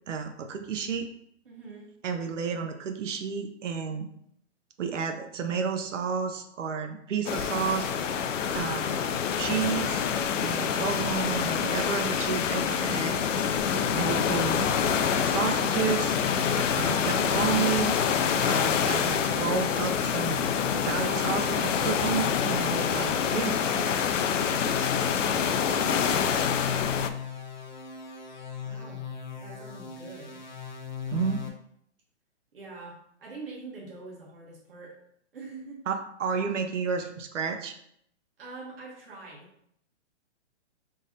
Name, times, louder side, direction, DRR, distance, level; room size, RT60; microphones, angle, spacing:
voice 1, 0.1-1.1 2.0-4.1 4.8-7.9 8.5-9.1 9.4-10.0 10.4-13.2 14.0-14.7 15.2-16.1 16.5-17.9 18.5-20.4 20.7-23.6 31.1-31.4 35.9-37.7, right 6 dB, 85° right, 6 dB, 0.7 m, -31 dB
voice 2, 1.4-2.0 26.2-27.1 28.6-30.4 31.0-31.3 32.5-35.0 35.3-35.9 38.4-39.5, right 3 dB, 50° right, -4 dB, 1.5 m, -45 dB
sound 1, 7.3-27.1, left 7 dB, 90° left, 0.5 m, -26 dB
sound 2, 16.1-31.5, left 6 dB, 40° left, 0.7 m, -39 dB
3.9 x 2.5 x 3.9 m, 0.70 s
hypercardioid pair, 165°, 36 cm